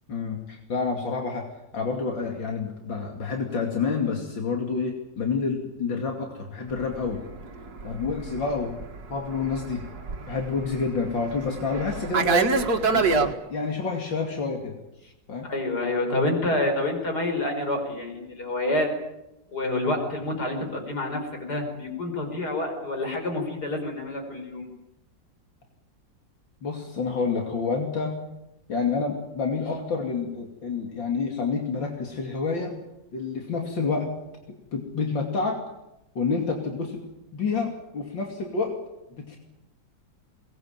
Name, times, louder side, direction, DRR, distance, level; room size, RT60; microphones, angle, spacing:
voice 1, 0.1-1.5 1.7-7.2 7.8-8.8 9.1-9.9 10.3-12.5 12.9-14.8 15.3-15.5 26.6-28.2 28.7-32.8 33.1-34.1 34.7-35.6 36.2-37.0 37.3-38.7 39.2-39.4, left 4 dB, 85° left, 2 dB, 3.4 m, -28 dB
Fixed-wing aircraft airplane, 6.8-13.3, right 4 dB, 55° right, 2.3 m, -27 dB
voice 2, 15.5-18.9 19.5-24.7, left 2 dB, 60° left, 4 dB, 5.6 m, -28 dB
22.5 x 20.0 x 9.0 m, 0.90 s
omnidirectional pair, 2.0 m